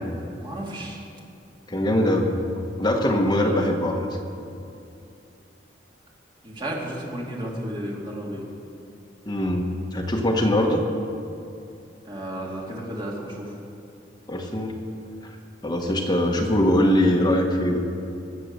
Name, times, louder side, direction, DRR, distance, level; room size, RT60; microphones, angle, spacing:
voice 1, 0.4-1.0 3.4-3.6 6.4-8.5 12.0-13.5, right 1 dB, 25° right, -3 dB, 2.6 m, -33 dB
voice 2, 1.7-2.3 2.8-4.1 9.3-10.8 14.3-14.8 15.6-17.8, left 1 dB, 20° left, 1 dB, 1.2 m, -22 dB
22.0 x 7.7 x 6.7 m, 2.6 s
head